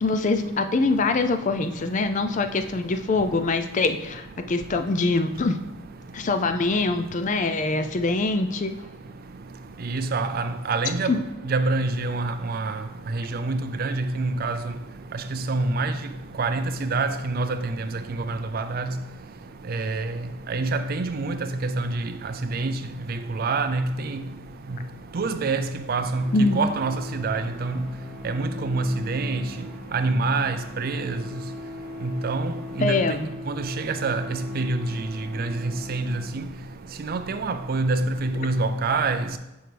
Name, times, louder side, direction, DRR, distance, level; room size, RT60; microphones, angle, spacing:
voice 1, 0.0-5.6 6.1-8.7 11.1-11.2 26.3-26.6 32.8-33.3, left 3 dB, 35° left, 0.4 m, -24 dB
voice 2, 9.8-11.1 11.4-12.8 13.1-14.6 15.3-15.9 16.4-17.6 18.3-18.9 19.7-20.1 20.5-22.7 23.1-24.2 25.1-27.8 28.2-29.4 29.9-31.2 32.0-33.0 33.5-35.1 35.4-36.2 37.0-39.3, right 3 dB, 45° right, 0.4 m, -26 dB
sound 1, 26.1-36.8, left 1 dB, ahead, 2.0 m, -40 dB
7.7 x 5.3 x 3.3 m
head